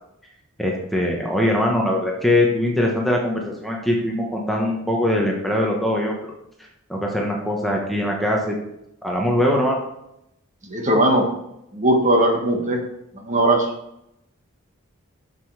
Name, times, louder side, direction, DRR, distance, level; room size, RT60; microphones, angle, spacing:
voice 1, 0.6-6.1 6.9-8.5 9.0-9.8, left 1 dB, ahead, -2 dB, 1.1 m, -22 dB
voice 2, 10.6-11.3 11.7-12.8 13.1-13.7, right 1 dB, 35° right, 2 dB, 1.5 m, -19 dB
7.7 x 6.9 x 4.8 m, 0.81 s
head